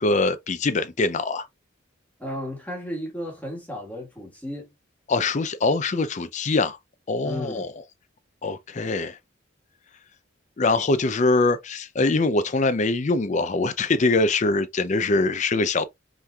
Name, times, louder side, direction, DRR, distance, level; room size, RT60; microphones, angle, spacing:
voice 1, 0.0-1.5 5.1-6.8 7.1-7.7 8.4-9.2 10.6-15.9, left 3 dB, 35° left, 0.4 m, -23 dB
voice 2, 2.2-4.7 7.2-7.6, left 1 dB, 10° left, 1.5 m, -34 dB
5.6 x 3.2 x 2.3 m
head